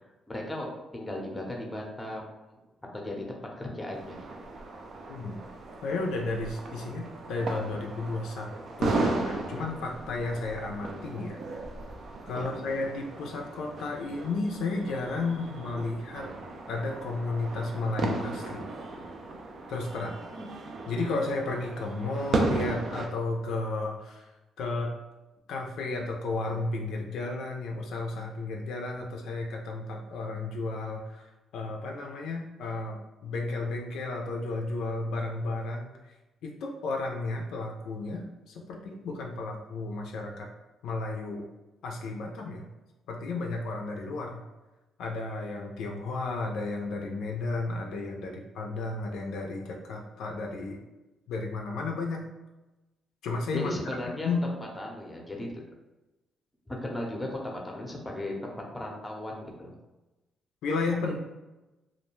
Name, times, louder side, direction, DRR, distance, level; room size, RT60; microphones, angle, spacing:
voice 1, 0.3-2.2 2.5-2.6 2.9-4.2 12.3-12.4 20.4-20.5 53.5-54.3 54.8-55.5 56.7-59.7, left 1 dB, 15° left, -1 dB, 0.6 m, -36 dB
sound 1, 3.9-23.1, right 3 dB, 55° right, 0.4 m, -35 dB
voice 2, 5.1-5.4 5.8-8.5 8.8-11.4 12.2-16.3 16.7-18.7 19.7-20.1 20.9-24.2 24.6-24.9 25.5-35.9 36.4-40.5 40.8-41.5 41.8-42.7 43.1-44.4 45.0-50.8 51.3-52.2 53.2-53.7 54.0-54.4 60.6-61.2, left 3 dB, 80° left, 1 dB, 0.3 m, -33 dB
2.3 x 2.1 x 3.0 m, 1.0 s
cardioid pair, 90°, 0 cm